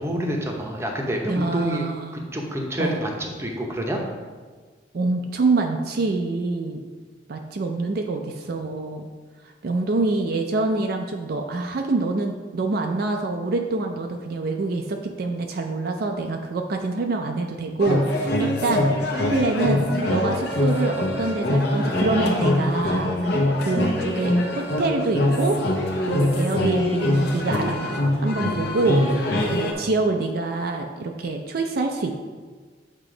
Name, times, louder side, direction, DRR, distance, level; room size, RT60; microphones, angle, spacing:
voice 1, 0.0-1.9 2.1-4.0, equal, 15° right, 0 dB, 0.8 m, -28 dB
voice 2, 1.3-2.2 2.8-3.0 4.9-6.8 7.3-9.1 9.6-18.9 19.3-25.6 26.1-29.0 29.5-32.1, right 3 dB, 55° right, 3 dB, 0.4 m, -26 dB
sound 1, 17.8-29.7, left 1 dB, 65° left, 0.8 m, -23 dB
7.5 x 3.0 x 4.9 m, 1.5 s
head